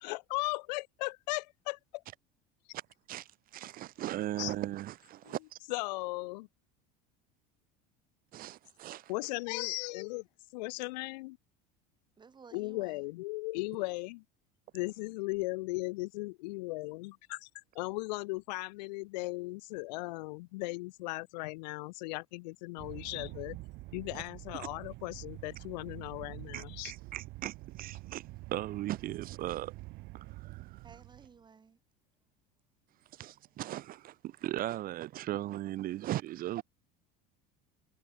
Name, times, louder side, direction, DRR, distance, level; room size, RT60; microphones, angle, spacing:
voice 1, 0.0-2.0 4.4-4.5 5.2-5.3 5.7-6.5 9.1-10.3 10.5-11.4 12.5-14.2 14.7-17.5 17.8-23.6 23.9-26.9, left 23 dB, 85° left, 0.4 m, -37 dB
voice 2, 3.5-5.6 8.3-9.1 24.1-24.2 24.6-24.7 26.5-28.2 28.5-29.7 30.1-30.8 33.1-36.6, right 14 dB, 45° right, 0.6 m, -38 dB
voice 3, 12.2-13.0 30.8-31.8, right 5 dB, 20° right, 1.1 m, -55 dB
sound 1, 22.8-31.4, right 21 dB, 60° right, 1.3 m, -47 dB
supercardioid pair, 100°, 21 cm